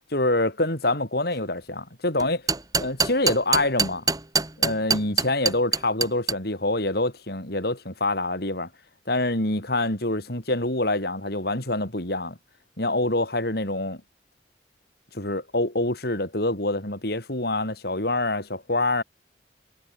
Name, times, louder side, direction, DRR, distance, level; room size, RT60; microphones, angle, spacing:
voice 1, 0.1-2.4 2.8-4.0 4.6-8.7 9.1-12.4 12.8-14.0 15.1-19.0, left 2 dB, 60° left, 6.1 m, -26 dB
sound 1, 2.2-6.3, right 4 dB, 20° right, 4.3 m, -23 dB
head